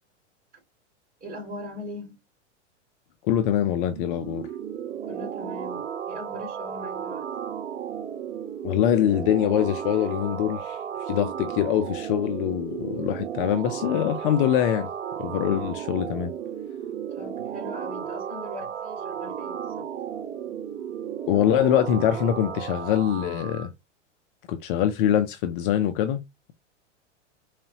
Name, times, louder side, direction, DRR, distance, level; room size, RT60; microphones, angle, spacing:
voice 1, 1.2-2.2 5.0-7.3 16.8-19.9, left 1 dB, 25° right, 2.8 m, -40 dB
voice 2, 3.2-4.5 8.6-10.8 11.1-14.9 15.2-16.3 21.3-23.7 24.5-26.2, left 10 dB, 45° left, 0.5 m, -24 dB
sound 1, 3.8-23.7, right 9 dB, 70° right, 1.0 m, -34 dB
3.9 x 3.2 x 2.8 m
hypercardioid pair, 130°, 37 cm